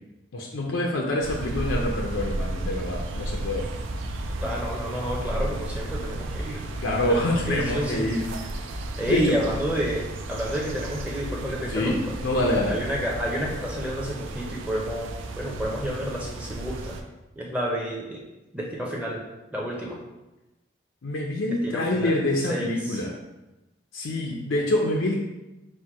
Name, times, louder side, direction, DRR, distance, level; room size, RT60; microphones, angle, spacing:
voice 1, 0.3-3.7 6.8-8.2 9.1-9.3 11.7-12.0 12.2-12.8 21.0-23.1 23.9-25.2, left 1 dB, 85° left, -1 dB, 0.5 m, -26 dB
sound 1, 1.2-17.0, right 1 dB, 85° right, 0.4 m, -33 dB
voice 2, 4.4-6.6 7.1-8.1 9.0-10.0 10.3-12.1 12.7-17.0 17.4-18.2 18.5-19.2 19.5-20.0 21.6-23.0, equal, 5° right, -3 dB, 0.5 m, -30 dB
4.4 x 2.2 x 4.7 m, 1.0 s
head